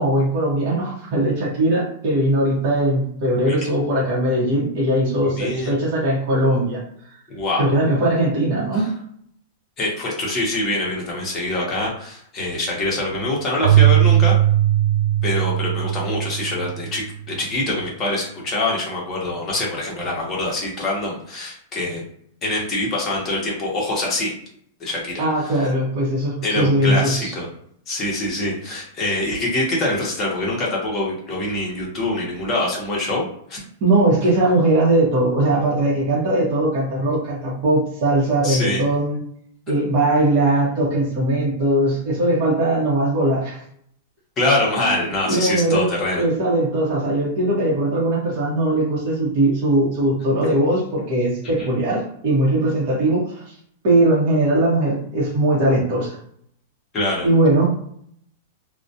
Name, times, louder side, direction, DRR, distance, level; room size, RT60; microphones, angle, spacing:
voice 1, 0.0-6.8 7.6-8.9 25.2-27.3 33.8-39.2 39.7-43.6 44.8-44.9 45.3-45.9 46.2-53.5 53.8-56.2 57.2-57.6, right 1 dB, 40° right, -5 dB, 0.9 m, -20 dB
voice 2, 5.2-5.7 7.3-7.7 8.7-8.8 9.8-14.4 15.2-22.0 22.4-24.3 24.8-25.7 26.4-27.5 27.9-33.6 38.4-38.8 44.4-46.2 51.6-51.7 56.9-57.3, left 2 dB, 20° left, -4 dB, 0.8 m, -24 dB
Keyboard (musical), 13.6-17.1, right 13 dB, 65° right, 0.3 m, -18 dB
2.3 x 2.1 x 2.7 m, 0.67 s
supercardioid pair, 165°, 0 cm